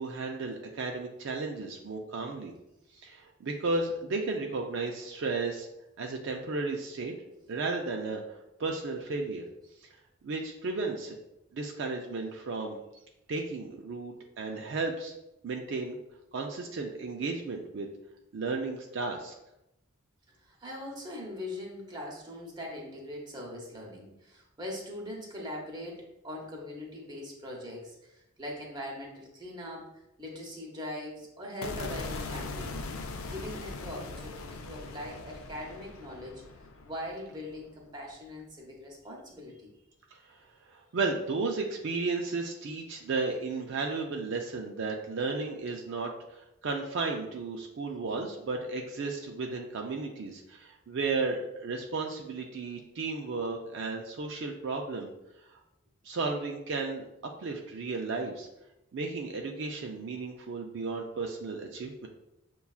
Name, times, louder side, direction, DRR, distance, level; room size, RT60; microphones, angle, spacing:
voice 1, 0.0-2.5 2.9-5.7 6.0-7.2 7.5-9.4 9.8-9.9 10.2-11.2 11.5-12.8 13.3-15.1 15.4-16.0 16.3-17.9 18.3-19.4 40.1-40.2 40.6-55.1 56.0-57.0 57.4-58.5 58.9-62.1, right 3 dB, 60° right, 1 dB, 0.4 m, -34 dB
voice 2, 20.4-29.9 30.2-36.4 36.8-39.7, left 1 dB, 20° right, -2 dB, 0.8 m, -41 dB
sound 1, 31.6-37.8, left 3 dB, 85° left, 0.4 m, -40 dB
6.8 x 2.3 x 2.3 m, 0.87 s
head